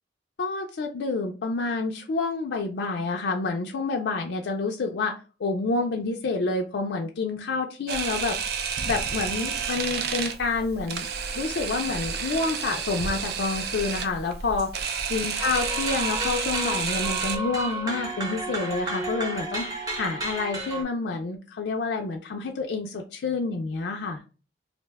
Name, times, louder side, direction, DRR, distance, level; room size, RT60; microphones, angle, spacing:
voice 1, 0.4-8.4 8.9-11.1 11.3-14.7 15.1-24.2, left 3 dB, 65° left, 2 dB, 0.4 m, -28 dB
Camera, 7.9-17.4, right 6 dB, 60° right, 0.4 m, -30 dB
sound 1, 15.4-20.8, right 1 dB, 20° right, 0.7 m, -32 dB
2.5 x 2.1 x 3.4 m, 0.35 s
head